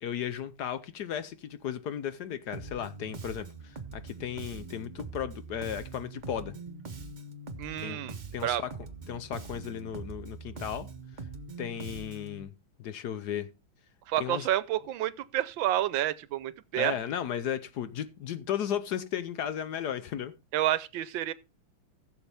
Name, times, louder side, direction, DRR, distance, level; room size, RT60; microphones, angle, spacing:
voice 1, 0.0-6.5 7.8-8.1 8.3-8.7 9.1-10.9 11.6-12.5 12.8-13.5 14.2-14.5 16.7-20.3, left 9 dB, 65° left, 1.1 m, -35 dB
Bass guitar, 2.5-12.4, right 3 dB, 35° right, 0.7 m, -43 dB
voice 2, 7.6-8.2 8.4-8.6 14.1-17.0 20.5-21.3, right 13 dB, 75° right, 1.4 m, -29 dB
15.5 x 7.2 x 3.4 m
omnidirectional pair, 2.1 m